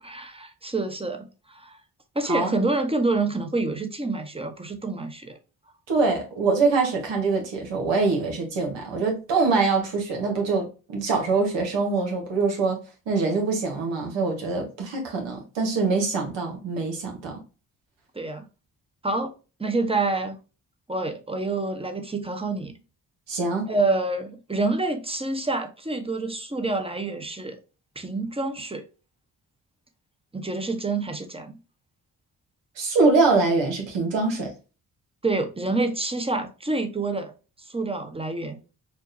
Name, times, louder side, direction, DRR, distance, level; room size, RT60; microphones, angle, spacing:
voice 1, 0.0-1.8 2.1-5.4 18.1-18.4 19.0-19.3 19.6-20.4 20.9-22.7 23.7-27.6 27.9-28.9 30.3-31.6 35.2-37.3 37.6-38.6, right 3 dB, 15° right, 1.0 m, -27 dB
voice 2, 5.9-12.8 13.1-17.4 23.3-23.7 32.8-34.5, right 4 dB, 80° right, 1.4 m, -24 dB
4.5 x 2.3 x 2.7 m
hypercardioid pair, 40°, 44 cm